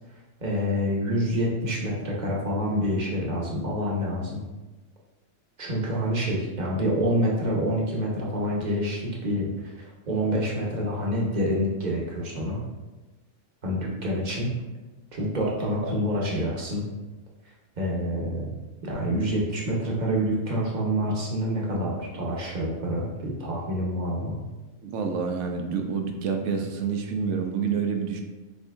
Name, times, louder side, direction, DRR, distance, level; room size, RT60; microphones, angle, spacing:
voice 1, 0.4-4.4 5.6-12.6 13.6-14.5 15.1-16.9 17.8-18.5 18.8-24.4, equal, 40° right, -3 dB, 0.9 m, -27 dB
voice 2, 24.8-28.2, right 6 dB, 70° right, 4 dB, 0.9 m, -28 dB
6.6 x 2.7 x 2.4 m, 1.2 s
omnidirectional pair, 1.3 m